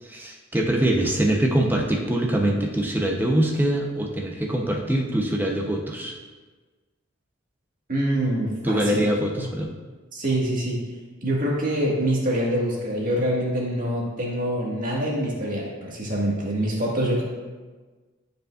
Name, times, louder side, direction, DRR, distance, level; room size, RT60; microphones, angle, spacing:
voice 1, 0.0-6.2 8.6-9.7, right 1 dB, 10° right, 0 dB, 0.7 m, -23 dB
voice 2, 7.9-9.0 9.3-9.5 10.1-10.8 11.2-17.2, right 1 dB, 40° right, -3 dB, 1.7 m, -25 dB
12.0 x 5.1 x 2.4 m, 1.3 s
head